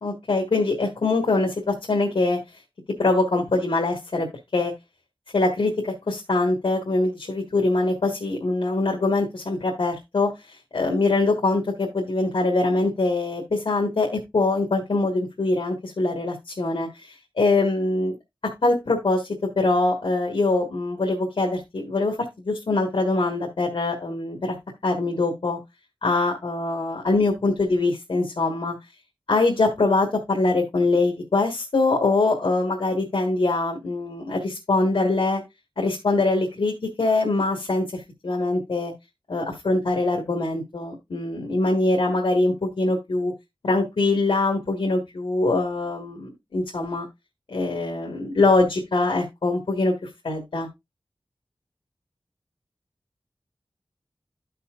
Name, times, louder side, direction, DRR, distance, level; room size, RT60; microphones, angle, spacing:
voice 1, 0.0-2.4 3.0-4.3 4.5-4.7 5.3-18.1 18.6-24.6 24.8-25.6 26.0-28.8 29.3-35.4 35.8-38.9 39.3-43.3 43.6-47.0 47.5-50.7, left 2 dB, 90° left, 0 dB, 1.5 m, -23 dB
12.5 x 5.6 x 2.4 m, 0.21 s
wide cardioid pair, 50°, 9 cm